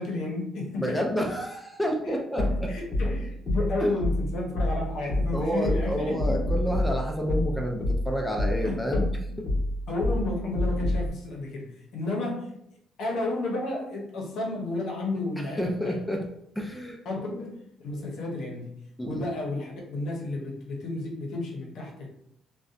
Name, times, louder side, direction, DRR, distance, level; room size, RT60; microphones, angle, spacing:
voice 1, 0.0-1.1 2.0-6.4 8.6-9.1 9.9-12.5 13.0-16.0 17.0-18.7 19.0-22.1, left 2 dB, 70° left, -1 dB, 0.7 m, -32 dB
voice 2, 0.8-2.7 3.8-3.9 5.3-9.0 15.6-16.3 16.6-17.0 17.3-17.4 19.0-19.2, equal, 5° left, 1 dB, 0.4 m, -29 dB
sound 1, 2.4-11.1, left 1 dB, 40° left, 0.9 m, -28 dB
2.6 x 2.1 x 2.4 m, 0.74 s
cardioid pair, 85°, 0 cm